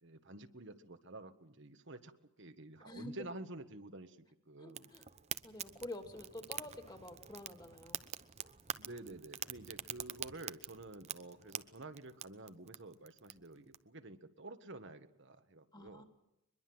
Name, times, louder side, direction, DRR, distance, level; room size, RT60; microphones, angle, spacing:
voice 1, 0.0-2.1 2.4-4.2 4.5-4.9 8.8-16.0, right 2 dB, 60° right, 8 dB, 1.5 m, -50 dB
voice 2, 2.8-3.1 4.6-5.0 5.4-8.0 15.7-16.0, left 1 dB, 20° left, 7 dB, 2.8 m, -48 dB
Fire, 4.8-13.8, right 9 dB, 35° right, 0.9 m, -46 dB
23.0 x 22.0 x 7.9 m, 0.85 s
head